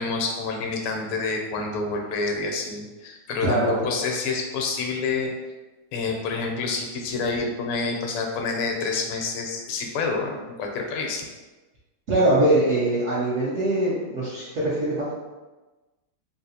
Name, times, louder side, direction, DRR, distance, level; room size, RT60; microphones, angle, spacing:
voice 1, 0.0-5.5 5.9-11.2, left 4 dB, 85° left, 2 dB, 1.4 m, -28 dB
voice 2, 3.4-3.8 12.1-15.1, right 1 dB, 75° right, -9 dB, 0.7 m, -22 dB
3.8 x 2.4 x 2.7 m, 1.2 s
omnidirectional pair, 2.2 m